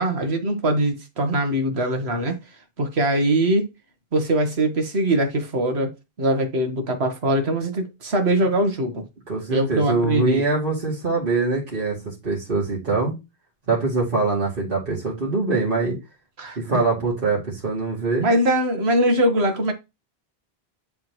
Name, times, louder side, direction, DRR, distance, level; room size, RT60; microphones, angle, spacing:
voice 1, 0.0-2.4 2.8-3.7 4.1-5.9 6.2-9.1 9.5-10.4 16.4-16.8 18.2-19.7, right 1 dB, 80° right, 1.7 m, -22 dB
voice 2, 9.3-13.1 13.7-16.0 16.6-18.3, right 3 dB, 55° right, 2.5 m, -23 dB
10.5 x 3.7 x 3.0 m
omnidirectional pair, 1.1 m